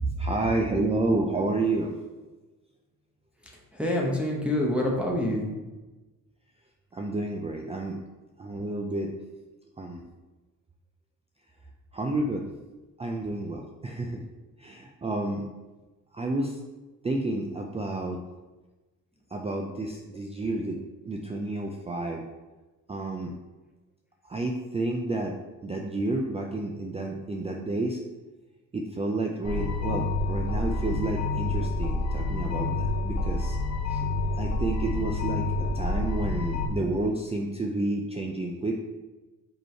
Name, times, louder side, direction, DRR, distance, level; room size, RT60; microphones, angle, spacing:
voice 1, 0.2-1.9 6.9-8.0 8.4-9.1 9.8-10.0 11.9-12.4 13.0-14.2 14.6-15.5 16.1-16.6 17.0-18.2 19.3-20.8 21.0-22.2 22.9-23.3 24.2-25.4 25.6-28.0 28.7-33.6 33.9-34.0 34.4-38.8, right 2 dB, 20° right, 1 dB, 0.4 m, -30 dB
voice 2, 3.4-5.5, equal, 5° right, -3 dB, 0.9 m, -27 dB
sound 1, 29.4-36.7, left 2 dB, 50° left, 1.0 m, -28 dB
5.2 x 4.8 x 4.4 m, 1.2 s
cardioid pair, 135°, 34 cm